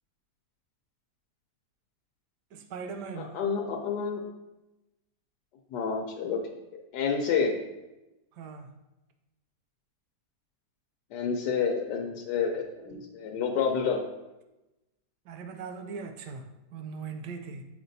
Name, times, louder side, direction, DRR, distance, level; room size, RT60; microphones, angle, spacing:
voice 1, 2.5-3.3 8.3-8.7 15.3-17.6, right 5 dB, 85° right, 1.2 m, -40 dB
voice 2, 3.2-4.2 5.7-6.4 6.9-7.6 11.1-14.0, left 6 dB, 85° left, 1.3 m, -29 dB
7.6 x 5.1 x 2.6 m
omnidirectional pair, 1.8 m